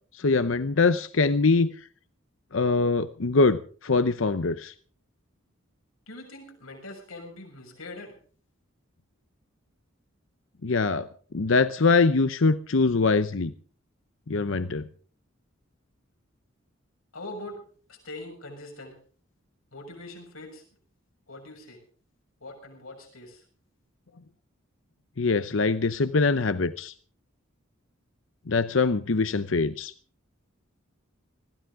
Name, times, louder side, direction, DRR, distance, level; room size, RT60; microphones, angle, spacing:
voice 1, 0.2-1.7 2.5-4.7 10.6-11.1 11.3-13.5 14.3-14.8 25.2-26.9 28.5-29.9, left 3 dB, 65° left, 12 dB, 0.7 m, -23 dB
voice 2, 6.1-8.1 17.1-17.6 17.9-19.0 19.7-20.6 21.3-21.8 22.4-23.4, left 2 dB, 90° left, 2 dB, 6.8 m, -42 dB
21.0 x 15.5 x 3.7 m, 0.41 s
head